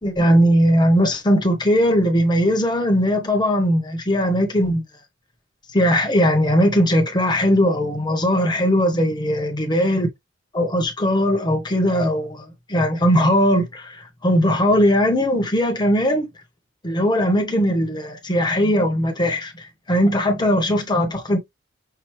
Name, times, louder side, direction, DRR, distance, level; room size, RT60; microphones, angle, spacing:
voice 1, 0.0-4.8 5.7-10.1 10.5-16.3 16.8-21.4, equal, 25° left, 1.2 m, -19 dB
5.9 x 2.7 x 3.1 m
head